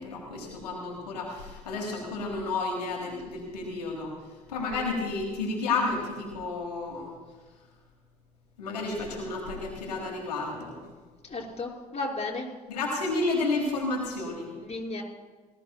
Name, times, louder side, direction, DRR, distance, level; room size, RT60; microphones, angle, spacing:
voice 1, 0.0-4.1 4.5-7.1 8.6-10.8 12.7-14.5, left 3 dB, 90° left, -1 dB, 1.7 m, -31 dB
voice 2, 11.2-12.5 14.5-15.0, left 2 dB, 30° left, -1 dB, 3.2 m, -34 dB
19.0 x 13.0 x 2.3 m, 1.3 s
hypercardioid pair, 50°, 20 cm